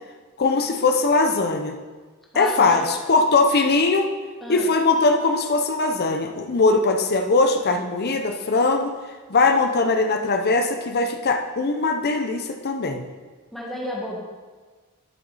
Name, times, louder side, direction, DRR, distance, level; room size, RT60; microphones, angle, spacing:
voice 1, 0.4-1.7 2.3-4.1 4.5-8.9 9.3-13.1, left 3 dB, 45° left, 5 dB, 0.7 m, -20 dB
voice 2, 2.3-2.9 4.4-4.7 13.5-14.2, left 1 dB, ahead, -4 dB, 1.7 m, -31 dB
11.5 x 5.9 x 4.1 m, 1.4 s
head